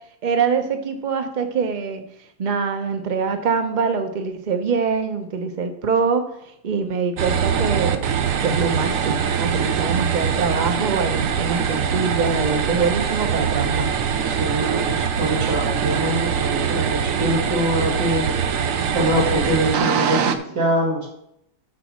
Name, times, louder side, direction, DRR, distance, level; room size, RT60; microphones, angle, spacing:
voice 1, 0.2-2.1 2.4-8.1 8.4-13.9, right 5 dB, 35° right, 6 dB, 0.8 m, -24 dB
sound 1, 7.2-20.4, right 7 dB, 60° right, 1.0 m, -23 dB
voice 2, 14.2-18.3 18.9-21.1, right 1 dB, 80° right, -4 dB, 2.8 m, -23 dB
11.5 x 4.1 x 6.1 m, 0.74 s
omnidirectional pair, 1.8 m